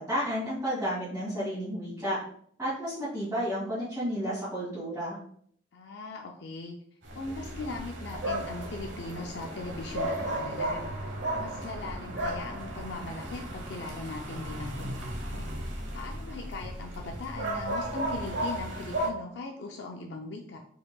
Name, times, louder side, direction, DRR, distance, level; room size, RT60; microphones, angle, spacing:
voice 1, 0.0-2.2 2.6-5.2, equal, 15° right, -13 dB, 2.0 m, -31 dB
voice 2, 5.7-6.8 7.1-10.9 11.4-15.5 15.9-20.6, left 3 dB, 60° left, 2 dB, 0.5 m, -39 dB
sound 1, 7.0-19.1, right 1 dB, 70° right, 1.2 m, -35 dB
5.1 x 4.6 x 2.3 m, 0.62 s
head